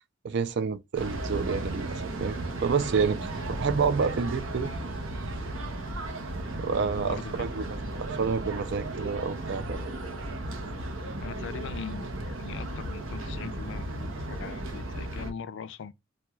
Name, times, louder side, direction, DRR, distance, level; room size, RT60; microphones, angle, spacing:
voice 1, 0.2-2.4 2.6-4.7 6.6-9.8, right 5 dB, 60° right, 0.4 m, -29 dB
sound 1, 0.9-15.3, right 1 dB, 80° right, 0.8 m, -35 dB
voice 2, 6.7-7.6 11.2-15.9, left 6 dB, 60° left, 0.4 m, -41 dB
4.3 x 2.2 x 2.2 m
head